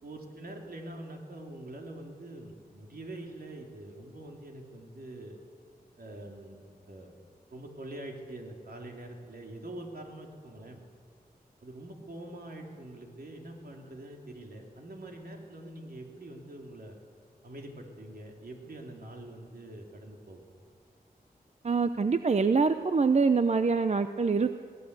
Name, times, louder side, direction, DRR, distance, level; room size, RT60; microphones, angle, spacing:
voice 1, 0.0-5.4 6.0-7.1 7.5-10.8 11.6-17.0 17.4-20.4, right 1 dB, 70° right, 1 dB, 3.1 m, -44 dB
voice 2, 21.6-24.5, right 4 dB, 45° right, 10 dB, 0.7 m, -25 dB
22.0 x 17.0 x 8.1 m, 2.1 s
wide cardioid pair, 100°, 16 cm